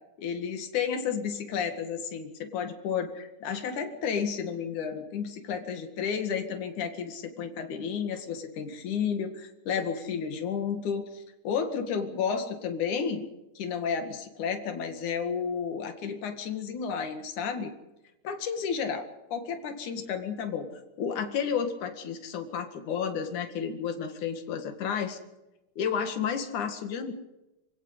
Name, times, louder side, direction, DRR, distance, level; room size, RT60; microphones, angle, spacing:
voice 1, 0.2-13.2 13.6-17.7 18.2-20.7 21.0-25.2 25.8-27.1, left 7 dB, 85° left, 6 dB, 3.5 m, -32 dB
26.5 x 17.0 x 8.1 m, 0.97 s
omnidirectional pair, 3.4 m